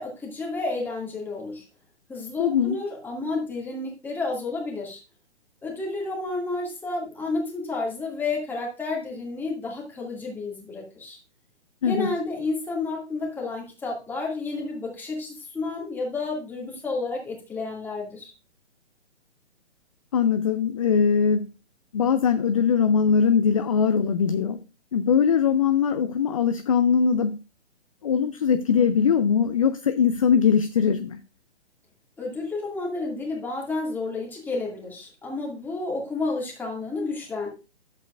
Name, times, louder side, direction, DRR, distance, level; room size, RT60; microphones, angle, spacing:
voice 1, 0.0-1.6 2.1-5.0 5.6-11.2 11.8-18.3 32.2-37.5, left 3 dB, 5° left, -2 dB, 2.1 m, -31 dB
voice 2, 2.4-2.8 11.8-12.1 20.1-21.5 21.9-24.6 24.9-27.4 28.0-31.2, left 6 dB, 30° left, 9 dB, 0.5 m, -21 dB
11.5 x 7.7 x 2.5 m, 0.30 s
figure-of-eight pair, 130°, 35 cm